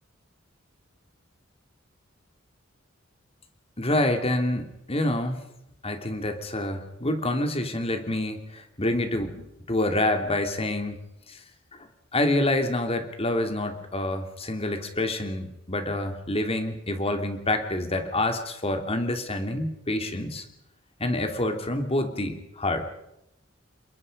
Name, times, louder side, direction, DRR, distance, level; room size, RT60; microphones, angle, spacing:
voice 1, 3.8-5.4 5.8-11.0 11.3-11.4 12.1-20.4 21.0-22.9, left 1 dB, 30° left, 6 dB, 2.9 m, -27 dB
29.0 x 23.0 x 5.4 m, 0.83 s
head